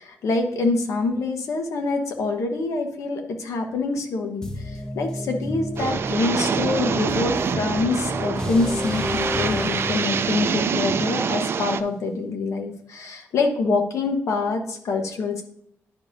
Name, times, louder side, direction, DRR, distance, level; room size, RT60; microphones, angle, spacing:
voice 1, 0.0-15.4, left 3 dB, 85° left, 4 dB, 1.1 m, -25 dB
sound 1, 4.4-12.3, left 1 dB, 15° left, 0.6 m, -32 dB
sound 2, 5.8-11.8, right 6 dB, 50° right, 0.4 m, -26 dB
10.0 x 5.1 x 2.6 m, 0.73 s
wide cardioid pair, 130°, 5 cm